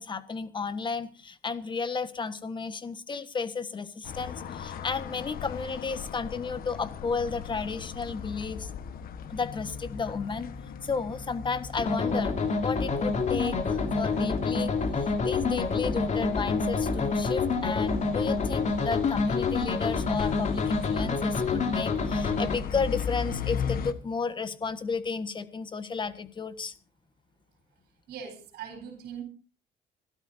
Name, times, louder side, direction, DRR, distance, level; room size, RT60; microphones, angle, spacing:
voice 1, 0.0-8.7 9.3-10.5 10.8-26.7, left 4 dB, 30° left, 11 dB, 1.4 m, -33 dB
sound 1, 4.0-23.9, left 7 dB, 60° left, 1.3 m, -38 dB
sound 2, 11.8-22.6, left 4 dB, 45° left, 3.0 m, -28 dB
voice 2, 28.1-29.2, right 7 dB, 70° right, 5 dB, 4.3 m, -40 dB
27.0 x 12.5 x 2.7 m, 0.36 s
cardioid pair, 110°, 17 cm